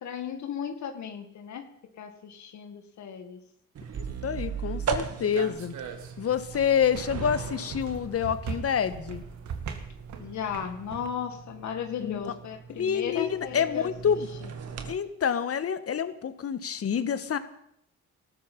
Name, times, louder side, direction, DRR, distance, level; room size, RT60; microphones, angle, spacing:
voice 1, 0.0-1.7 2.0-3.4 10.2-14.1 14.4-14.5, left 8 dB, 65° left, 6 dB, 1.9 m, -36 dB
sound 1, 3.7-14.9, right 6 dB, 55° right, 2.3 m, -38 dB
sound 2, 3.9-11.1, right 6 dB, 70° right, 2.4 m, -41 dB
voice 2, 4.2-5.7 6.2-9.2 12.0-12.3 12.8-14.3 14.8-17.4, left 7 dB, 50° left, 12 dB, 1.6 m, -27 dB
18.5 x 14.0 x 5.5 m, 0.73 s
cardioid pair, 90°, 30 cm